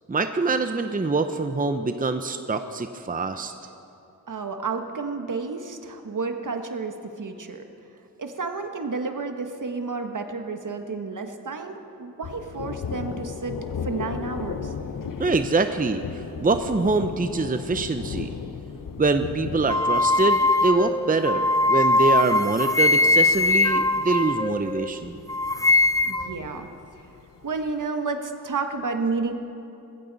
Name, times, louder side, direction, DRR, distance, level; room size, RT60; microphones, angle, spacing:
voice 1, 0.1-3.5 15.2-18.3 19.0-25.2, right 3 dB, 25° right, 8 dB, 0.7 m, -24 dB
voice 2, 4.3-7.6 8.2-13.5 13.8-14.7 26.0-26.7 27.4-29.3, right 4 dB, 60° right, 6 dB, 1.3 m, -31 dB
Thunder, 12.2-27.8, left 6 dB, 65° left, 0.8 m, -37 dB
sound 1, 19.7-25.0 25.3-26.4, left 2 dB, 10° left, 0.4 m, -21 dB
20.5 x 15.0 x 4.1 m, 2.8 s
cardioid pair, 45°, 35 cm